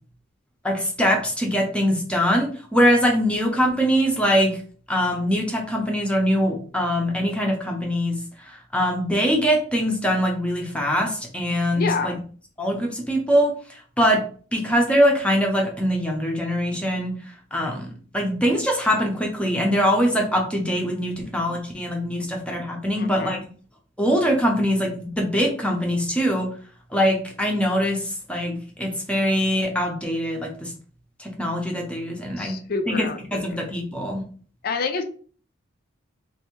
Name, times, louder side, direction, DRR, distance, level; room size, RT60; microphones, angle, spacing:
voice 1, 0.6-4.6 4.9-8.2 8.5-12.1 12.6-14.2 14.5-23.4 24.0-26.5 26.9-30.7 31.2-32.6 32.9-33.1 33.3-34.2, equal, 5° left, 0 dB, 0.6 m, -23 dB
voice 2, 11.8-12.2 21.2-21.3 23.0-23.4 32.4-33.6 34.6-35.0, left 4 dB, 50° left, 7 dB, 0.5 m, -28 dB
3.3 x 2.6 x 3.0 m, 0.42 s
head